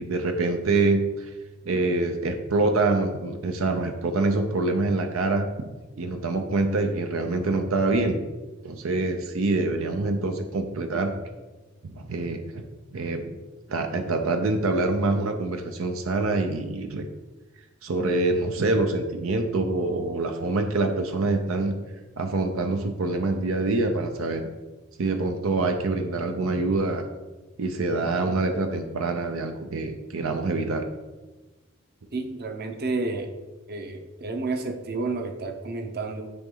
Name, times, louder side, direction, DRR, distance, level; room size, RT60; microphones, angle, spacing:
voice 1, 0.0-1.3 1.6-5.5 5.9-8.2 8.6-11.1 11.8-12.6 12.9-13.4 13.7-17.1 17.8-21.8 22.2-24.4 25.0-27.0 27.6-30.8, right 2 dB, 85° right, 6 dB, 0.6 m, -25 dB
voice 2, 32.1-33.3 33.7-36.3, right 3 dB, 50° right, 5 dB, 0.8 m, -30 dB
10.0 x 3.9 x 3.9 m, 1.2 s
head